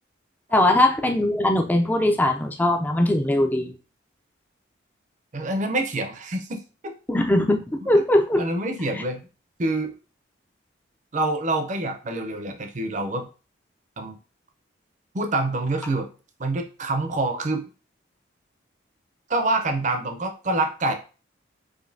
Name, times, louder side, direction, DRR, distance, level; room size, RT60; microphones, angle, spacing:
voice 1, 0.5-3.7 7.1-8.4 8.9-9.0, left 1 dB, 10° left, 3 dB, 0.4 m, -20 dB
voice 2, 5.3-6.9 7.9-8.0 8.4-9.3 9.6-9.9 11.1-13.3 14.0-14.2 15.1-16.1 16.4-17.6 19.3-20.9, right 2 dB, 40° right, 6 dB, 0.6 m, -26 dB
5.0 x 2.7 x 2.6 m, 0.34 s
head